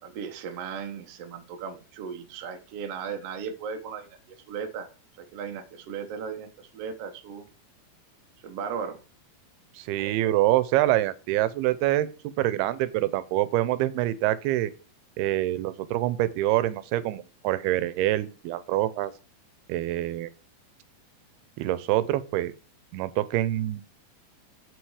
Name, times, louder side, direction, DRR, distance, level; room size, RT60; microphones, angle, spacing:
voice 1, 0.0-4.9 5.1-7.5 8.4-9.0, right 6 dB, 65° right, 1.5 m, -36 dB
voice 2, 9.8-14.7 15.2-19.1 19.7-20.3 21.6-22.5 22.9-23.8, right 15 dB, 85° right, 2.6 m, -25 dB
7.8 x 6.2 x 4.8 m
omnidirectional pair, 4.5 m